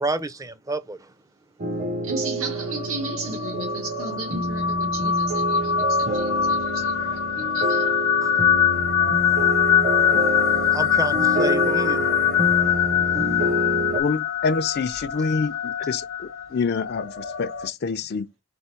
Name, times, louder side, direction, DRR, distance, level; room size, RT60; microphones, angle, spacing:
voice 1, 0.0-1.0 8.2-8.3 10.7-12.1, right 2 dB, 15° right, 0.5 m, -29 dB
sound 1, 1.6-14.0, right 1 dB, 40° right, 0.9 m, -28 dB
voice 2, 2.0-8.0, right 3 dB, 75° right, 1.5 m, -34 dB
sound 2, 2.5-17.7, left 8 dB, 90° left, 0.7 m, -23 dB
voice 3, 14.0-16.0 16.5-18.3, left 4 dB, 50° left, 0.4 m, -26 dB
3.5 x 3.5 x 4.3 m
head